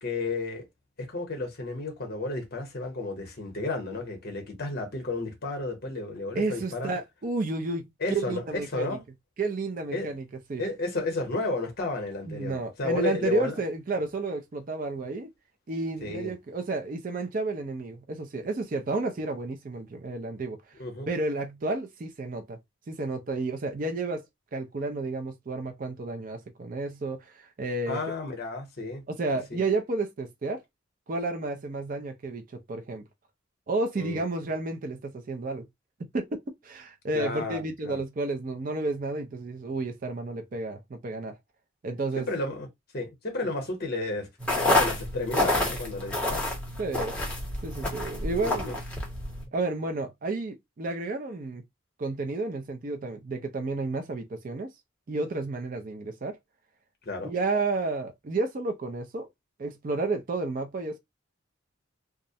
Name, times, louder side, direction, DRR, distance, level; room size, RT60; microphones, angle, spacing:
voice 1, 0.0-0.6 1.0-6.9 8.0-8.4 8.7-9.0 9.9-10.1 10.6-13.5 16.0-16.3 20.8-21.1 27.9-29.0 29.5-29.6 34.0-34.2 37.1-38.0 42.2-42.7 42.9-44.3 44.5-46.5 48.2-48.8 57.1-57.3, left 3 dB, 45° left, 0.7 m, -32 dB
voice 2, 6.3-9.0 9.4-10.2 10.5-10.6 12.3-15.3 15.7-20.6 21.1-22.6 22.9-24.3 24.5-28.0 29.1-30.6 31.1-33.0 33.7-35.7 36.1-41.3 41.8-42.3 46.8-47.2 47.6-48.8 49.5-51.6 52.0-54.7 55.1-56.4 57.2-59.3 59.6-61.0, right 3 dB, 40° right, 0.4 m, -31 dB
sound 1, 44.4-49.4, left 1 dB, 5° left, 0.7 m, -28 dB
2.4 x 2.0 x 2.6 m
head